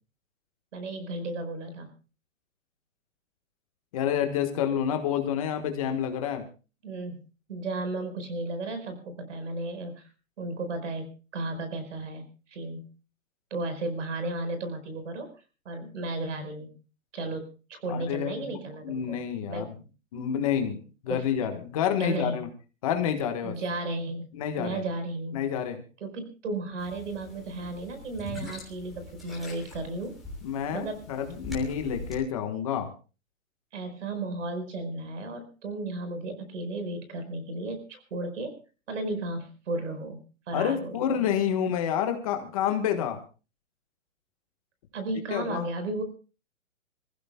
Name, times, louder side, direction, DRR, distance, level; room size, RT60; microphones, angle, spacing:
voice 1, 0.7-1.9 6.8-7.2 7.5-10.1 10.4-12.9 13.5-15.3 15.6-16.7 17.1-19.2 19.5-19.7 21.1-21.2 22.0-22.4 23.4-24.3 24.6-25.4 26.0-30.1 30.7-31.0 33.7-38.6 38.9-41.1 44.9-46.0, right 2 dB, 60° right, 9 dB, 4.8 m, -34 dB
voice 2, 3.9-6.5 17.9-18.6 18.8-19.7 20.1-20.8 21.0-22.5 22.8-23.5 24.3-24.8 25.3-25.8 30.4-32.9 40.5-43.2 45.3-45.7, left 9 dB, 25° left, 6 dB, 1.4 m, -28 dB
sound 1, 26.8-32.2, left 2 dB, ahead, 3.3 m, -42 dB
27.0 x 15.5 x 2.3 m, 0.34 s
hypercardioid pair, 175°, 41 cm